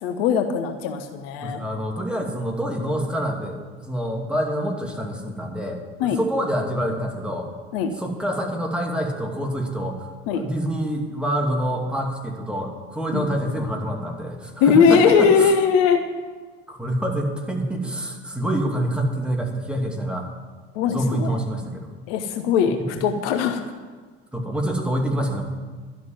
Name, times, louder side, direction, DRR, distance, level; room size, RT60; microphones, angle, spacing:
voice 1, 0.0-1.6 6.0-6.2 7.7-7.9 10.3-10.4 13.1-13.3 14.6-16.0 20.7-21.4 22.1-23.6, left 6 dB, 65° left, 6 dB, 1.1 m, -20 dB
voice 2, 1.4-7.5 8.0-15.5 16.7-20.3 20.9-21.9 22.8-23.0 24.3-25.4, right 1 dB, 5° right, -1 dB, 2.6 m, -26 dB
12.0 x 6.3 x 9.6 m, 1.4 s
figure-of-eight pair, 65°, 32 cm